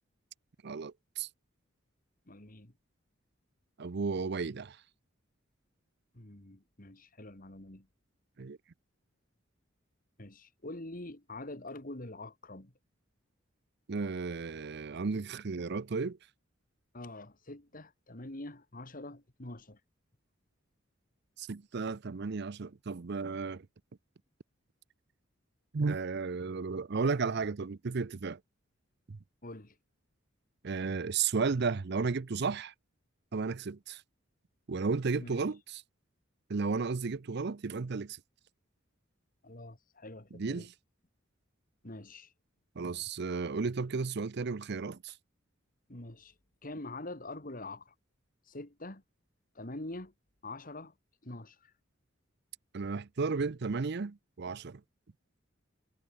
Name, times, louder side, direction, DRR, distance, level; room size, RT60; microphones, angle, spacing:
voice 1, 0.6-1.3 3.8-4.8 8.4-8.6 13.9-16.2 21.4-23.6 25.7-28.4 29.1-29.2 30.6-32.7 33.3-34.0 34.7-35.8 36.5-38.2 40.3-40.7 42.8-45.1 52.7-54.8, right 4 dB, 55° right, 0.6 m, -33 dB
voice 2, 2.3-2.7 6.1-7.9 10.2-12.7 16.9-19.8 29.4-29.7 35.2-35.4 39.4-40.7 41.8-42.3 45.9-46.3 46.6-47.9 48.5-49.0 49.5-50.1 50.4-50.9 51.2-51.7, left 2 dB, 45° left, 2.8 m, -45 dB
head